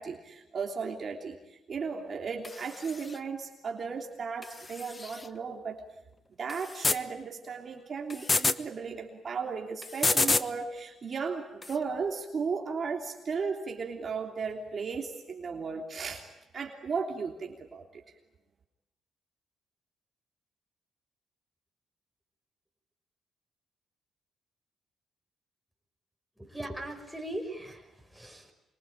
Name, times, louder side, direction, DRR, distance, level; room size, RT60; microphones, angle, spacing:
voice 1, 0.0-5.8 6.4-16.3 16.5-18.0, right 5 dB, 45° right, 2 dB, 3.2 m, -35 dB
sound 1, 2.4-3.2 4.4-5.3 6.5-7.0 8.1-8.6 9.8-10.5 11.6-11.8, left 3 dB, 25° left, 1.1 m, -29 dB
voice 2, 26.4-28.5, right 1 dB, ahead, 1 dB, 6.2 m, -39 dB
26.5 x 24.0 x 9.0 m, 0.95 s
cardioid pair, 90°, 0 cm